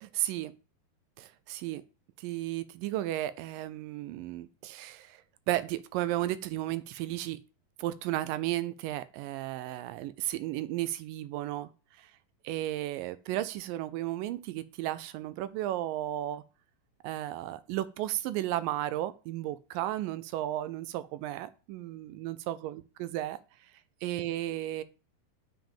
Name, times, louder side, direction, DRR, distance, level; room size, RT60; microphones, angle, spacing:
voice 1, 0.0-0.5 1.2-1.8 2.2-5.2 5.5-7.4 7.8-11.7 12.0-12.1 12.4-16.4 17.0-23.4 24.0-24.8, right 14 dB, 80° right, 15 dB, 2.1 m, -34 dB
7.3 x 6.0 x 7.2 m, 0.34 s
omnidirectional pair, 4.3 m